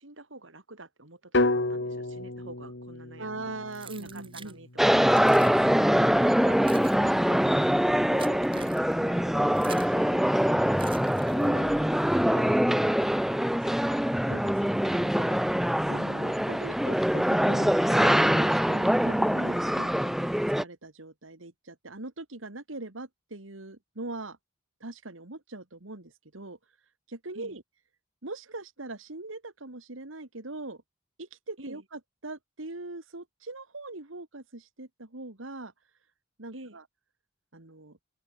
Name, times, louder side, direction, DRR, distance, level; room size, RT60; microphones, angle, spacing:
voice 1, 0.0-3.6 4.0-5.2 8.1-8.5 9.0-11.8 19.7-20.0 27.3-27.6 31.6-31.8 36.5-36.8, right 2 dB, 75° right, 5.5 m, -48 dB
sound 1, 1.3-5.4, left 2 dB, 60° left, 2.1 m, -31 dB
voice 2, 3.2-4.6 8.5-8.7 14.3-15.6 15.9-20.1 20.6-24.4 24.8-26.6 27.1-27.6 28.2-30.8 31.2-35.7 36.4-36.8 37.5-38.0, right 2 dB, 90° right, 2.3 m, -41 dB
Keys jangling, 3.7-4.6 5.1-5.6 6.3-10.0 10.7-11.7, right 6 dB, 25° right, 4.8 m, -47 dB
sound 2, 4.8-20.6, equal, ahead, 0.4 m, -24 dB
open air
head